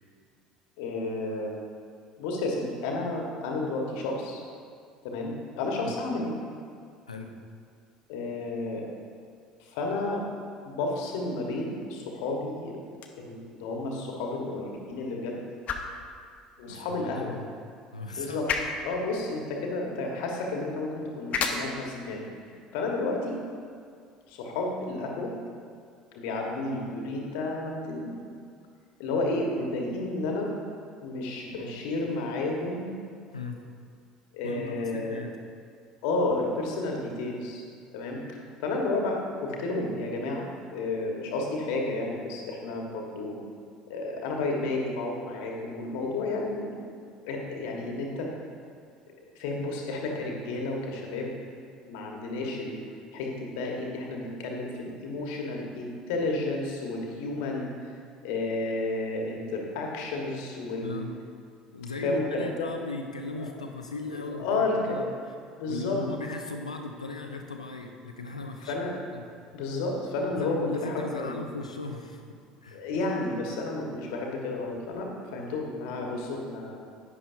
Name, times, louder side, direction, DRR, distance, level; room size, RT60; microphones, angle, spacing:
voice 1, 0.8-1.6 2.2-4.4 5.0-6.3 8.1-8.9 9.6-10.2 10.6-12.8 13.2-15.4 16.6-17.3 18.2-18.5 18.8-23.4 24.3-25.3 26.1-28.3 29.0-30.5 31.0-32.9 34.3-35.2 36.0-37.6 37.9-38.2 38.6-43.4 43.9-46.8 47.2-48.3 49.3-51.3 51.8-52.8 53.1-57.9 58.2-61.0 62.0-62.7 63.4-63.5 64.1-65.1 65.6-66.0 68.7-68.9 69.5-71.4 72.7-76.8, left 2 dB, 60° left, 0 dB, 1.6 m, -31 dB
sound 1, 12.9-24.9, left 5 dB, 40° left, 0.9 m, -39 dB
voice 2, 16.7-17.5 17.9-18.4 22.5-22.6 33.3-33.7 34.4-34.6 34.9-35.4 60.8-61.1 61.7-65.1 65.7-68.7 69.1-69.3 70.4-72.8, left 3 dB, 85° left, 4 dB, 0.7 m, -37 dB
11.0 x 9.5 x 2.8 m, 2.2 s
figure-of-eight pair, 65°, 3 cm